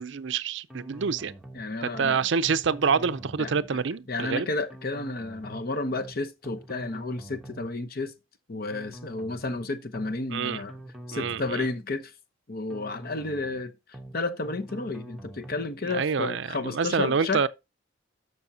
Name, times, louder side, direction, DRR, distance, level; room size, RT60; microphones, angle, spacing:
voice 1, 0.0-1.3 1.8-4.5 10.3-10.6 11.1-11.6 15.8-17.5, right 5 dB, 60° right, 0.5 m, -27 dB
sound 1, 0.7-1.6 1.9-2.2 2.4-3.7 4.7-5.6 5.9-6.2 6.4-7.7 8.7-9.6 9.9-10.2 10.4-11.7 12.7-13.6 13.9-14.2 14.4-15.7, right 1 dB, ahead, 1.0 m, -44 dB
voice 2, 1.5-2.2 3.4-3.5 4.1-8.1 8.5-10.7 11.1-12.1 12.5-13.7 14.1-17.4, left 3 dB, 45° left, 0.8 m, -31 dB
Bowed string instrument, 6.4-6.5, right 1 dB, 30° left, 4.1 m, -56 dB
12.0 x 6.2 x 2.7 m
head